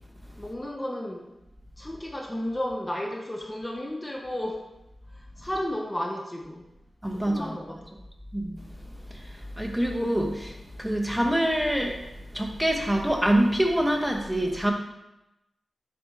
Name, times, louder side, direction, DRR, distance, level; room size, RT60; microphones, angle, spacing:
voice 1, 0.4-1.2 1.8-4.6 5.1-6.6 7.1-7.9, left 1 dB, 20° left, 1 dB, 0.9 m, -33 dB
voice 2, 7.0-7.6 8.3-8.6 9.1-12.0 12.3-14.7, right 1 dB, 5° right, 2 dB, 1.1 m, -25 dB
7.9 x 4.9 x 3.4 m, 0.93 s
cardioid pair, 55°, 0 cm